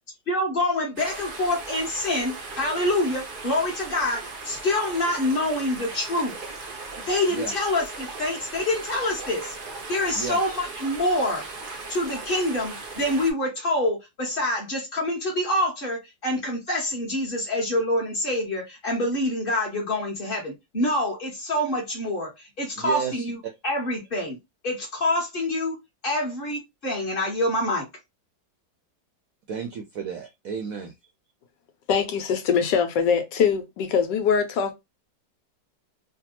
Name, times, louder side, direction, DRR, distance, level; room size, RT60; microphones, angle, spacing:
voice 1, 0.3-6.7 7.1-9.6 9.9-11.4 11.9-23.4 23.6-24.4 24.6-25.8 26.0-27.9, left 1 dB, 35° left, 1.1 m, -26 dB
sound 1, 1.0-13.3, right 3 dB, 90° right, 0.4 m, -38 dB
voice 2, 22.8-23.2 29.5-30.9, right 7 dB, 75° right, 0.8 m, -32 dB
voice 3, 31.9-34.7, left 6 dB, 75° left, 1.3 m, -23 dB
3.3 x 2.2 x 2.8 m
omnidirectional pair, 1.9 m